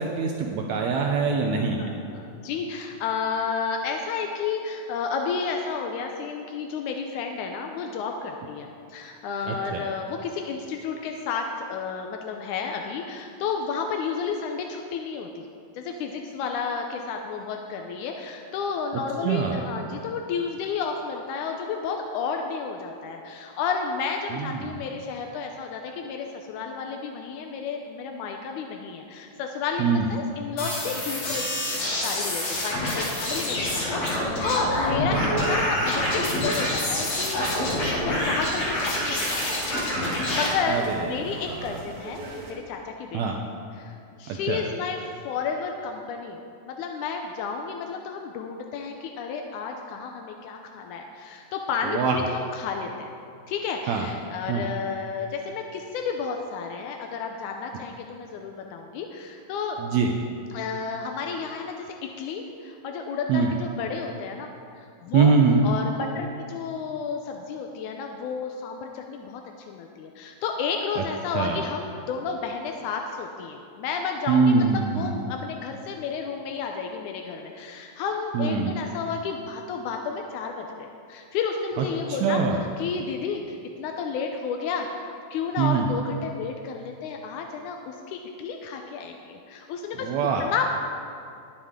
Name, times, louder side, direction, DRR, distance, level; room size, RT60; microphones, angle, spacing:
voice 1, 0.0-1.8 9.5-9.8 19.2-19.6 24.3-24.8 29.8-30.1 35.4-35.5 40.7-41.1 41.5-41.8 43.1-43.4 44.3-44.6 51.8-52.1 53.9-54.1 54.5-54.6 59.8-60.1 63.3-63.5 65.1-65.6 71.0-71.1 71.3-71.6 74.3-75.2 78.3-78.7 82.1-82.6 85.6-85.9 90.0-90.4, right 5 dB, 90° right, 1 dB, 1.6 m, -23 dB
voice 2, 1.5-15.5 15.7-31.5 31.9-42.2 42.5-43.4 43.7-46.4 46.6-53.1 53.5-59.8 60.5-65.3 65.6-82.4 82.8-90.1 90.4-90.6, left 5 dB, 80° left, 3 dB, 1.8 m, -32 dB
sound 1, 30.6-40.5, left 1 dB, 55° left, 3.5 m, -26 dB
sound 2, 36.4-42.5, right 2 dB, 50° right, 2.2 m, -43 dB
20.5 x 7.4 x 3.7 m, 2.4 s
omnidirectional pair, 4.1 m